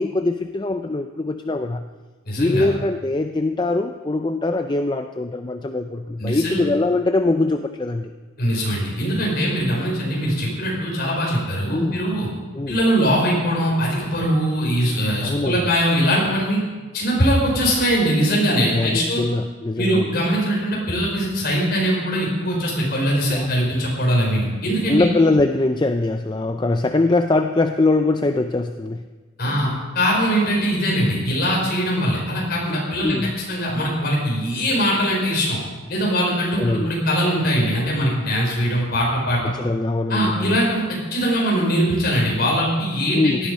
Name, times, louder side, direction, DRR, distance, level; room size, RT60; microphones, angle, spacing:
voice 1, 0.0-1.9 2.4-8.1 11.7-12.0 12.5-12.8 15.2-15.7 18.7-20.1 23.3-23.5 24.9-29.0 29.4-29.6 33.0-33.3 36.6-36.9 39.4-40.6 43.1-43.4, left 2 dB, 20° left, 7 dB, 0.4 m, -22 dB
voice 2, 2.3-2.7 6.2-6.6 8.4-12.3 12.7-16.6 16.9-19.2 19.8-25.1 29.4-35.6 35.9-39.5 40.1-43.5, equal, 45° left, -3 dB, 5.4 m, -21 dB
17.5 x 11.5 x 5.5 m, 1.3 s
head